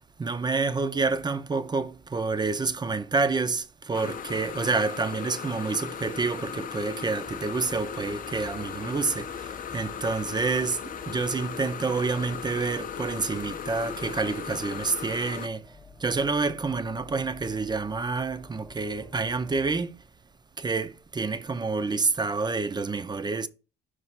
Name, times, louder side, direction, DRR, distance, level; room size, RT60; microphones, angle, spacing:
voice 1, 0.2-20.0 20.6-23.5, right 4 dB, 20° right, 0.4 m, -28 dB
sound 1, 3.9-15.5, left 8 dB, 45° left, 0.5 m, -37 dB
sound 2, 7.2-19.8, left 3 dB, 10° left, 0.7 m, -50 dB
5.4 x 3.3 x 5.7 m
cardioid pair, 90°, 20 cm